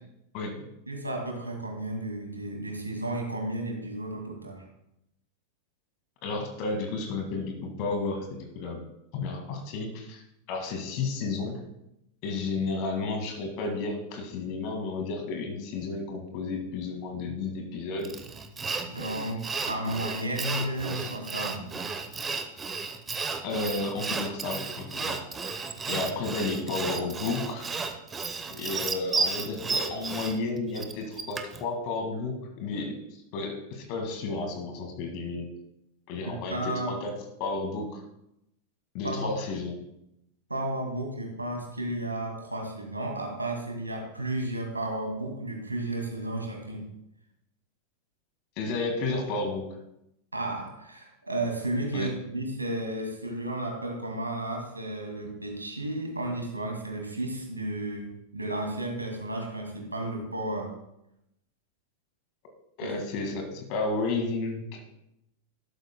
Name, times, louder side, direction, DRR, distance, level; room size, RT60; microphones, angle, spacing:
voice 1, 0.9-4.6 18.9-21.7 25.9-26.0 36.3-36.9 39.0-39.3 40.5-46.9 50.3-60.7 62.8-62.9, right 1 dB, 80° right, 2 dB, 2.2 m, -33 dB
voice 2, 6.2-8.8 9.1-10.2 10.5-11.6 12.2-18.2 23.4-25.2 25.9-27.7 28.5-32.9 33.3-35.5 36.1-37.1 37.4-38.0 38.9-39.7 48.6-49.6 51.9-52.1 62.8-64.8, left 3 dB, 45° left, 3 dB, 1.9 m, -32 dB
Sawing, 18.0-31.6, right 4 dB, 15° right, 0.9 m, -33 dB
13.0 x 12.5 x 2.2 m, 0.83 s
figure-of-eight pair, 90°, 0 cm